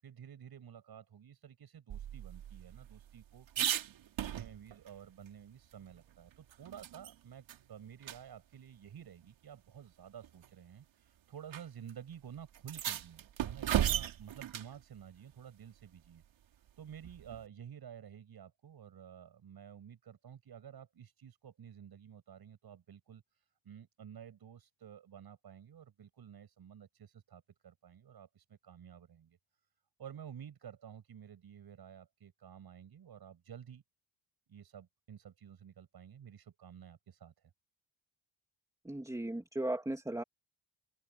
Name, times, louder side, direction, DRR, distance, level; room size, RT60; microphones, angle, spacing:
voice 1, 0.0-29.4 30.0-33.8 34.5-37.5, right 8 dB, 50° right, 7.8 m, -52 dB
sound 1, 1.9-4.9 5.3-5.4 5.7-7.1 7.5-7.6 8.0-8.2 9.2-9.3 10.2-10.5 11.5-11.6 11.9-12.0 12.5-14.7 17.0-17.5, right 11 dB, 65° right, 2.9 m, -36 dB
voice 2, 38.8-40.2, right 1 dB, 5° right, 3.0 m, -36 dB
open air
cardioid pair, 175°, 49 cm